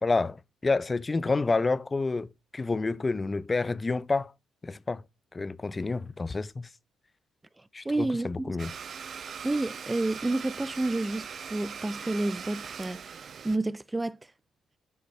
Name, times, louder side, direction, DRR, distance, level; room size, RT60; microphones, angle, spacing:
voice 1, 0.0-4.3 4.6-5.0 5.3-6.7 7.7-8.7, left 3 dB, 30° left, 0.6 m, -29 dB
voice 2, 7.9-8.6 9.4-13.1 13.4-14.2, right 2 dB, 20° right, 0.4 m, -30 dB
Domestic sounds home sounds, 8.6-13.6, right 7 dB, 55° right, 0.8 m, -40 dB
10.0 x 5.8 x 4.7 m
supercardioid pair, 60°, 0 cm